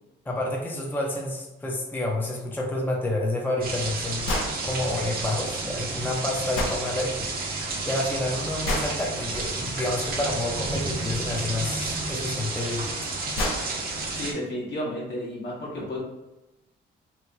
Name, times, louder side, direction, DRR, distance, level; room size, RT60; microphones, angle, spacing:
voice 1, 0.3-4.3 4.6-7.3 7.8-13.0, left 1 dB, 10° left, -1 dB, 0.5 m, -29 dB
sound 1, 3.6-14.3, right 3 dB, 50° right, 0.7 m, -31 dB
sound 2, 4.3-4.5 6.5-6.8 8.6-8.9 11.2-11.3 12.6-12.7 13.1-13.2 13.4-13.7, left 2 dB, 90° left, 0.6 m, -27 dB
voice 2, 14.1-16.0, equal, 65° left, -4 dB, 1.3 m, -32 dB
3.0 x 2.1 x 3.5 m, 1.0 s
cardioid pair, 90°, 20 cm